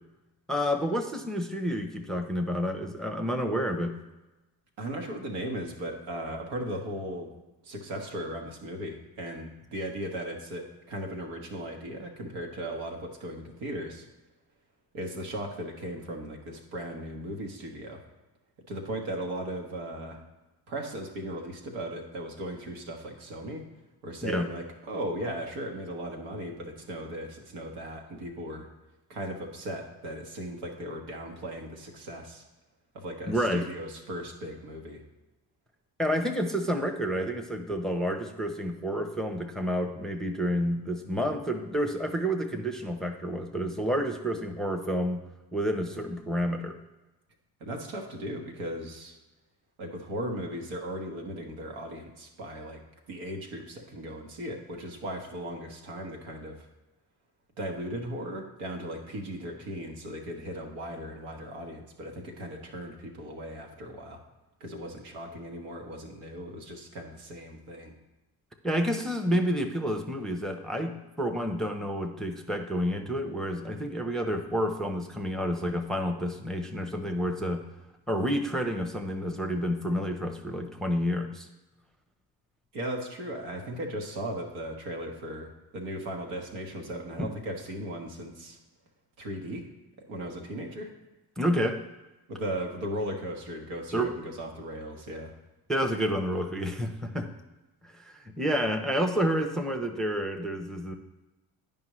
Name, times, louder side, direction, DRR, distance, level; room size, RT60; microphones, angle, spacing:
voice 1, 0.5-4.0 24.2-24.5 33.3-33.7 36.0-45.2 45.5-46.7 68.6-77.6 78.1-81.5 87.2-87.3 91.4-91.8 93.9-94.1 95.7-97.3 97.8-100.9, equal, ahead, 4 dB, 0.7 m, -29 dB
voice 2, 4.8-7.3 7.6-14.0 14.9-18.0 18.7-20.2 20.7-23.6 24.0-28.7 29.1-32.4 32.9-35.0 47.6-49.2 49.8-52.8 53.1-56.7 57.6-64.2 64.6-67.9 82.7-88.6 89.2-89.6 90.1-90.9 92.3-95.3, right 1 dB, 75° right, 2 dB, 1.3 m, -37 dB
9.4 x 5.3 x 3.1 m, 1.1 s
supercardioid pair, 60°, 47 cm